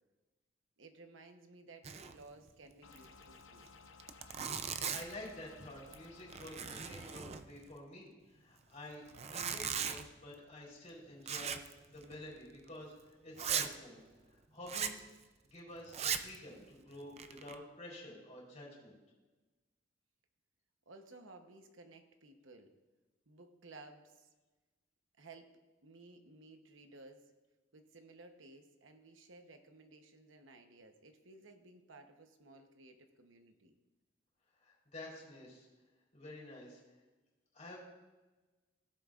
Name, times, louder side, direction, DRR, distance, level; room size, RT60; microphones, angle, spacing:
voice 1, 0.8-3.7 20.9-22.7 23.3-24.3 25.2-27.3 27.7-33.7, right 2 dB, 80° right, 6 dB, 1.0 m, -57 dB
Zipper (clothing), 1.8-2.2 2.5-2.6 2.9-3.1 3.7-3.8 4.0-5.3 5.8-6.1 6.3-7.7 9.1-10.1 11.3-11.7 12.0-12.2 12.7-12.8 13.4-13.7 14.7-15.0 15.9-16.4 16.9-17.6, right 7 dB, 35° right, 0.5 m, -38 dB
sound 1, 2.8-7.2, left 5 dB, 90° left, 0.8 m, -58 dB
voice 2, 4.9-11.6 11.9-14.0 14.3-15.0 15.5-19.0 34.6-35.7 36.1-36.8 37.5-37.8, left 1 dB, 40° left, -4 dB, 3.7 m, -50 dB
17.0 x 7.7 x 2.5 m, 1.2 s
head